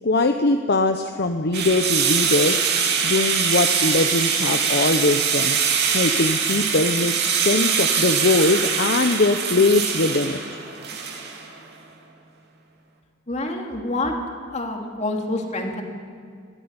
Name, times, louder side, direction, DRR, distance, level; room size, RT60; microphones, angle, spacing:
voice 1, 0.0-2.6 3.0-5.6 5.9-10.4, left 2 dB, 55° left, 6 dB, 0.9 m, -21 dB
sound 1, 1.5-11.5, right 6 dB, 55° right, 2.7 m, -23 dB
voice 2, 13.3-14.1 14.5-15.8, left 2 dB, 35° left, 2 dB, 2.6 m, -27 dB
23.0 x 13.5 x 9.6 m, 2.2 s
head